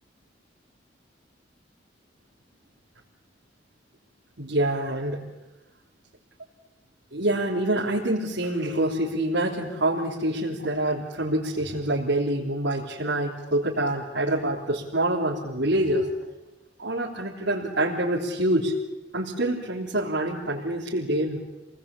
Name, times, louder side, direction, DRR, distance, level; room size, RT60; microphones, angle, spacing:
voice 1, 4.4-5.2 7.1-16.1 16.8-18.7 19.1-21.4, right 1 dB, 70° right, -5 dB, 3.6 m, -26 dB
27.5 x 19.5 x 8.6 m, 1.1 s
head